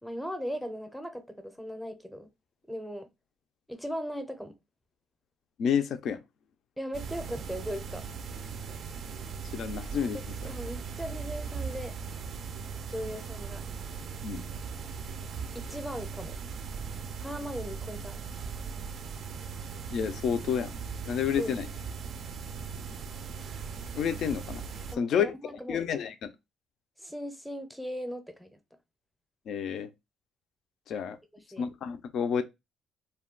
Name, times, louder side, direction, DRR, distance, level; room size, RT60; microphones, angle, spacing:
voice 1, 0.0-2.3 2.7-3.1 3.7-4.6 6.8-8.1 10.1-11.9 12.9-13.6 15.5-16.4 17.2-18.2 21.3-21.6 24.9-25.8 27.0-28.6 31.3-31.7, equal, ahead, 0.6 m, -38 dB
voice 2, 5.6-6.2 9.5-10.2 14.2-14.4 19.9-20.7 21.1-21.7 23.9-24.6 25.0-25.3 25.7-26.3 29.5-29.9 30.9-31.2 31.6-32.4, left 7 dB, 65° left, 0.4 m, -29 dB
sound 1, 6.9-25.0, right 6 dB, 50° right, 0.3 m, -39 dB
2.3 x 2.2 x 3.6 m
cardioid pair, 110°, 0 cm